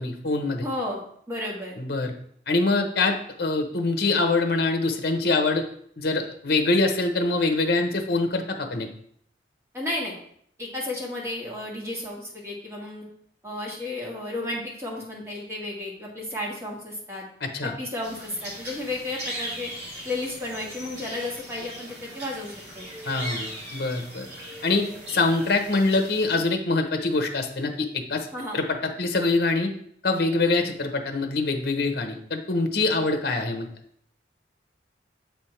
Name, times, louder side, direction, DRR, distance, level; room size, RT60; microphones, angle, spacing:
voice 1, 0.0-0.6 1.8-2.1 2.5-5.6 6.0-8.9 17.4-17.7 23.0-24.3 24.6-28.3 28.5-29.7 30.0-33.7, left 3 dB, 55° left, 5 dB, 0.8 m, -24 dB
voice 2, 0.6-1.8 9.7-10.2 10.6-13.0 13.4-17.2 17.6-19.7 20.0-22.9 28.3-28.6, left 2 dB, 15° right, -3 dB, 1.6 m, -33 dB
sound 1, 18.0-26.3, right 1 dB, 60° right, 2.1 m, -39 dB
7.4 x 3.4 x 4.4 m, 0.65 s
head